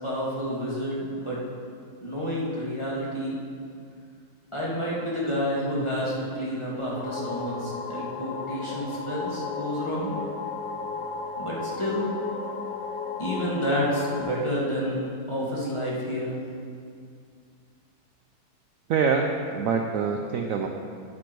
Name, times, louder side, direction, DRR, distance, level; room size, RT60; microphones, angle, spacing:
voice 1, 0.0-1.4 2.0-3.4 4.5-10.2 11.4-12.1 13.2-15.0 15.3-16.4, equal, 15° left, -6 dB, 2.2 m, -29 dB
sound 1, 6.9-14.2, left 4 dB, 85° left, 1.8 m, -34 dB
voice 2, 18.9-20.7, right 5 dB, 65° right, 3 dB, 0.9 m, -25 dB
9.7 x 9.5 x 4.6 m, 2.2 s
omnidirectional pair, 1.9 m